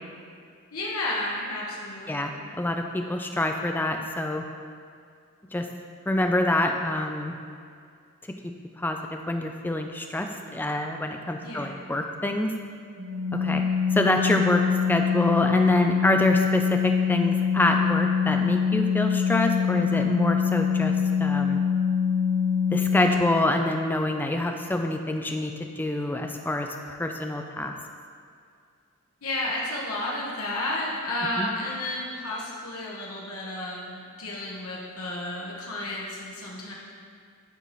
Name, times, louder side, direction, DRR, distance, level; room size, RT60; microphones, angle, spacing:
voice 1, 0.7-2.3 11.4-11.8 29.2-36.7, left 1 dB, 75° left, -4 dB, 1.1 m, -32 dB
voice 2, 2.1-4.4 5.5-5.7 6.1-7.3 8.8-12.5 13.4-13.6 13.9-14.6 14.9-20.9 21.2-21.6 22.7-25.5 25.8-27.7 31.4-31.5, left 1 dB, 10° left, 4 dB, 0.3 m, -26 dB
Organ, 13.0-23.6, left 7 dB, 45° right, 0.7 m, -24 dB
10.0 x 4.1 x 3.1 m, 2.2 s
head